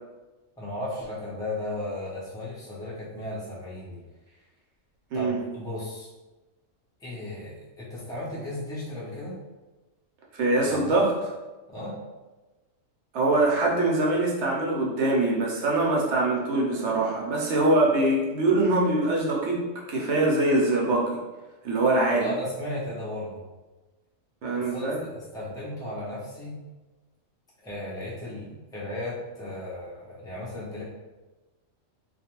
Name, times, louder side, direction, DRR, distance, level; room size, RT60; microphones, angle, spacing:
voice 1, 0.6-4.0 5.1-6.1 7.0-9.4 10.7-11.0 11.7-11.9 22.2-23.4 24.5-26.6 27.6-30.8, left 1 dB, 5° left, -8 dB, 0.4 m, -35 dB
voice 2, 5.1-5.4 10.3-11.1 13.1-21.1 21.6-22.3 24.4-25.0, right 2 dB, 65° right, -3 dB, 0.9 m, -23 dB
2.4 x 2.3 x 2.9 m, 1.1 s
omnidirectional pair, 1.4 m